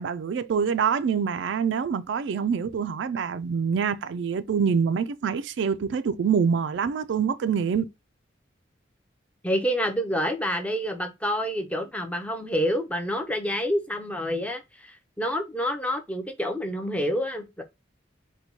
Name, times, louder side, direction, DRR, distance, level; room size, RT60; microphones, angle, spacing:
voice 1, 0.0-7.9, right 6 dB, 75° right, 0.3 m, -25 dB
voice 2, 9.4-17.6, equal, 5° left, 0.5 m, -28 dB
4.3 x 2.2 x 2.7 m
head